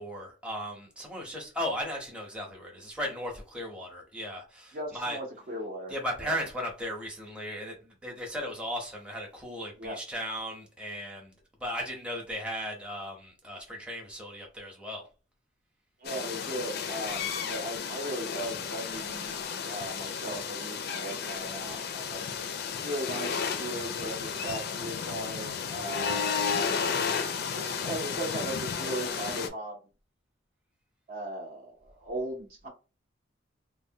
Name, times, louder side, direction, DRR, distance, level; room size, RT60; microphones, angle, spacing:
voice 1, 0.0-5.2 5.9-11.3 11.6-15.1, equal, 5° right, 0.7 m, -36 dB
voice 2, 4.7-6.4 9.8-10.0 16.0-19.4 19.7-22.2 22.8-27.0 27.5-29.8 31.1-32.7, right 1 dB, 50° right, 0.7 m, -38 dB
sound 1, 16.0-29.5, left 6 dB, 55° left, 0.4 m, -33 dB
3.1 x 2.1 x 2.7 m
head